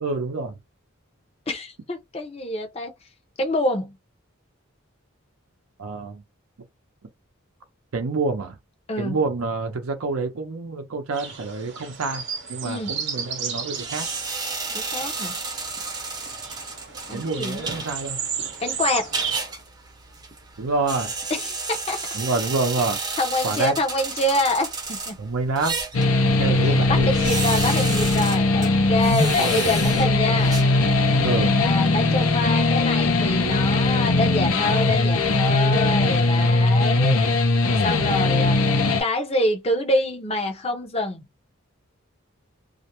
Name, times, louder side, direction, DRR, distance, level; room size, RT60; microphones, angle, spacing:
voice 1, 0.0-0.6 5.8-6.2 7.9-8.6 9.0-12.2 12.5-14.1 17.1-18.2 20.6-21.1 22.1-23.0 23.4-23.8 25.2-25.8 26.2-27.1 29.2-29.8 31.2-31.6, right 3 dB, 80° right, 0.5 m, -27 dB
voice 2, 1.5-2.9 3.4-4.0 8.9-9.2 12.6-13.0 14.7-15.4 17.1-17.8 18.6-19.1 21.3-22.2 23.2-25.2 26.5-30.6 31.6-37.2 37.8-38.6 39.0-41.2, left 1 dB, 30° left, 0.6 m, -26 dB
sound 1, 11.1-19.4, right 7 dB, 55° right, 0.8 m, -34 dB
sound 2, 13.7-31.2, right 4 dB, 20° right, 0.5 m, -32 dB
sound 3, 25.9-39.0, left 2 dB, 85° left, 0.6 m, -20 dB
2.4 x 2.0 x 2.8 m
head